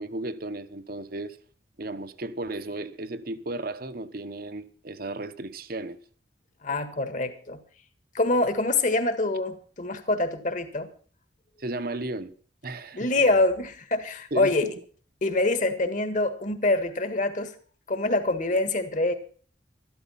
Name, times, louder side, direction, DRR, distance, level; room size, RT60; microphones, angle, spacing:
voice 1, 0.0-1.4 1.8-6.0 11.6-12.3 12.6-13.1 14.3-14.7, right 2 dB, 55° right, 1.1 m, -34 dB
voice 2, 6.6-7.6 8.1-10.9 12.9-14.7 15.2-17.5 17.9-19.1, left 2 dB, 45° left, 1.7 m, -25 dB
13.0 x 12.5 x 5.7 m
head